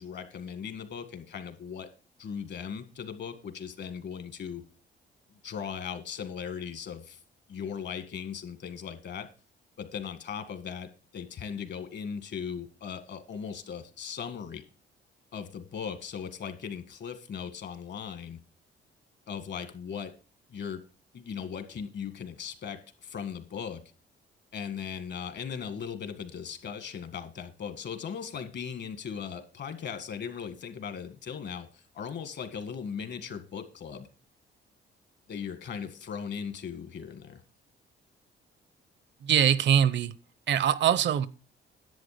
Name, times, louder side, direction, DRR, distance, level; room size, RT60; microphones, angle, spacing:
voice 1, 0.0-1.9 2.2-4.6 5.4-7.2 7.5-9.3 9.8-10.9 11.1-14.6 15.3-18.4 19.3-20.1 20.5-20.8 21.1-23.8 24.5-34.1 35.3-37.4, left 7 dB, 60° left, 1.9 m, -38 dB
voice 2, 39.2-40.1 40.5-41.3, right 9 dB, 65° right, 0.8 m, -23 dB
10.5 x 8.0 x 5.1 m
cardioid pair, 90°, 20 cm